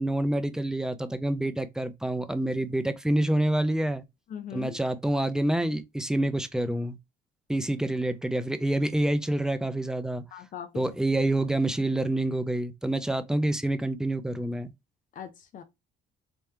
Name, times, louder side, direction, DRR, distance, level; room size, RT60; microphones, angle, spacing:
voice 1, 0.0-4.0 4.5-7.0 7.5-10.2 10.7-14.7, right 1 dB, 5° right, 0.6 m, -27 dB
voice 2, 4.3-4.8 10.3-10.8 15.1-15.6, left 9 dB, 50° left, 0.7 m, -40 dB
3.5 x 2.9 x 3.3 m
cardioid pair, 110°, 17 cm